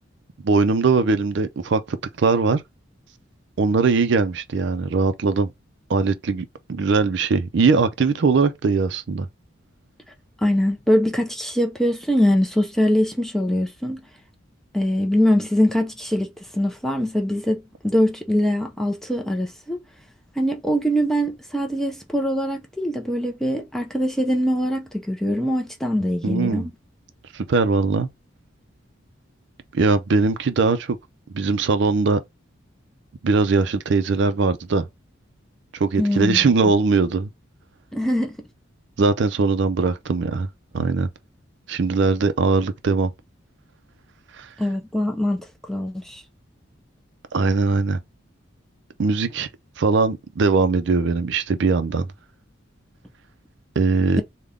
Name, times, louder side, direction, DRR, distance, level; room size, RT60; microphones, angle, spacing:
voice 1, 0.4-2.6 3.6-5.5 5.9-9.3 26.2-26.7 27.3-28.1 29.7-31.0 31.3-32.2 33.2-34.8 35.7-37.3 39.0-40.5 40.7-41.1 41.7-43.1 44.4-44.5 47.3-48.0 49.0-49.5 49.8-52.1 53.8-54.2, right 4 dB, 60° right, 0.4 m, -20 dB
voice 2, 10.4-14.0 14.7-19.8 20.4-26.7 36.0-36.4 37.9-38.5 44.6-46.2 54.1-54.2, equal, ahead, 0.4 m, -22 dB
3.5 x 2.2 x 3.5 m
head